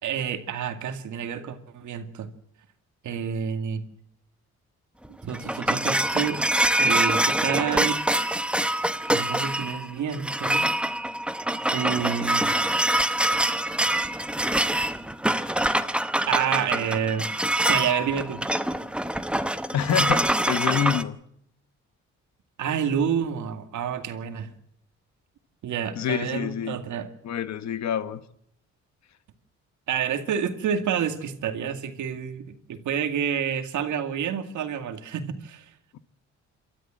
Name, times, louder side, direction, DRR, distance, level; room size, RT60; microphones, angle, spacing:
voice 1, 0.0-2.3 3.0-3.8 5.1-6.4 6.8-8.0 9.1-10.7 11.7-12.5 16.3-17.4 17.7-18.4 22.6-24.5 25.6-27.1 29.9-35.7, right 8 dB, 75° right, 2.2 m, -28 dB
sound 1, 5.0-21.0, right 1 dB, 5° right, 1.0 m, -25 dB
voice 2, 19.7-21.2 26.0-26.8 27.2-28.2, left 9 dB, 65° left, 1.3 m, -27 dB
28.5 x 13.0 x 7.6 m
cardioid pair, 90°, 30 cm